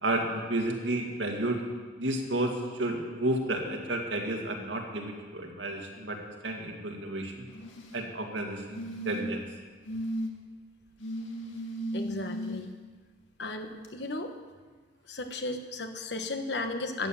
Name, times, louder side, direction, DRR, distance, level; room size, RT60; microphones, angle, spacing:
voice 1, 0.0-1.6 2.0-6.2 6.4-7.5 7.9-9.4, right 1 dB, 75° right, 1 dB, 2.2 m, -31 dB
sound 1, 7.5-8.0 8.7-9.4 9.9-10.3 11.0-12.6 13.8-13.9, equal, 85° left, 2.0 m, -35 dB
voice 2, 11.9-12.7 13.4-14.3 15.1-17.1, left 2 dB, 60° left, 6 dB, 1.3 m, -35 dB
13.5 x 9.9 x 7.2 m, 1.4 s
head